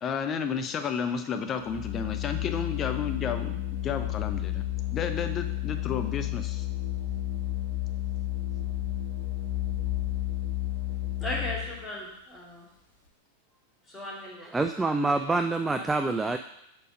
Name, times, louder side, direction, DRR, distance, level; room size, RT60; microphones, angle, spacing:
voice 1, 0.0-4.6 4.9-6.7, left 6 dB, 30° left, 7 dB, 0.6 m, -32 dB
Organ, 1.6-11.9, left 13 dB, 65° left, 1.8 m, -31 dB
voice 2, 11.2-12.7 13.9-14.5 15.8-15.9, left 1 dB, 10° left, -6 dB, 2.3 m, -36 dB
voice 3, 14.4-16.4, right 3 dB, 10° right, 6 dB, 0.3 m, -26 dB
4.9 x 4.6 x 5.0 m, 0.78 s
figure-of-eight pair, 90°, 0 cm